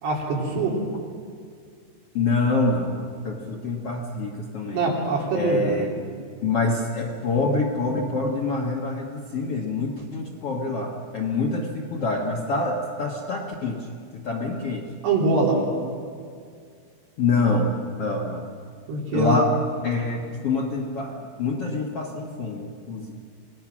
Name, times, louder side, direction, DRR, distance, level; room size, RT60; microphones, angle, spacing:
voice 1, 0.0-0.8 4.7-5.7 15.0-15.6 18.9-19.4, right 3 dB, 90° right, -2 dB, 5.5 m, -23 dB
voice 2, 2.1-4.9 5.3-5.9 6.4-13.9 14.1-14.9 17.2-17.7 18.0-18.5 19.1-19.5 19.8-23.1, left 3 dB, 60° left, 0 dB, 1.6 m, -26 dB
27.5 x 18.5 x 6.1 m, 2.2 s
omnidirectional pair, 4.6 m